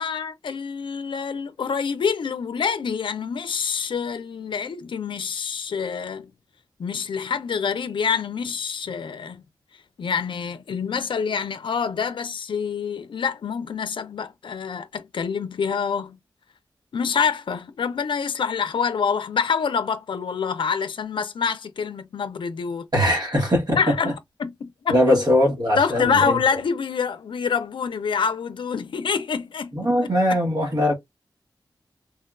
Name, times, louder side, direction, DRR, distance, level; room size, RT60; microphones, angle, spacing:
voice 1, 0.0-6.3 6.8-9.4 10.0-16.2 16.9-22.9 23.8-24.1 24.4-25.2 25.8-29.7 30.0-30.4, left 6 dB, 85° left, 0.4 m, -26 dB
voice 2, 22.9-23.8 24.9-26.4 29.7-30.9, left 1 dB, 55° right, 1.2 m, -20 dB
3.4 x 2.2 x 2.3 m
wide cardioid pair, 80°, 8 cm